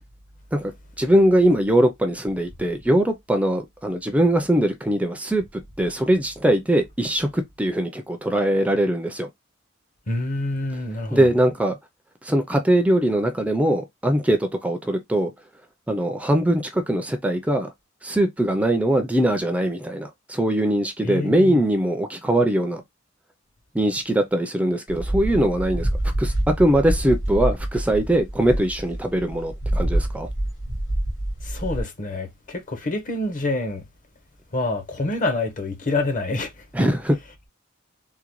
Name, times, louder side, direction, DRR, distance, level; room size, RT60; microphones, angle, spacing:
voice 1, 1.0-5.4 5.8-9.3 11.1-11.8 12.2-15.3 15.9-17.7 18.0-22.8 23.7-25.9 26.2-30.3 36.7-37.2, right 1 dB, 5° right, 0.4 m, -21 dB
voice 2, 10.1-11.3 21.0-21.6 31.4-33.8 34.5-36.5, left 2 dB, 45° left, 0.8 m, -27 dB
sound 1, 24.9-31.8, right 1 dB, 70° left, 1.7 m, -26 dB
3.7 x 2.1 x 2.9 m
head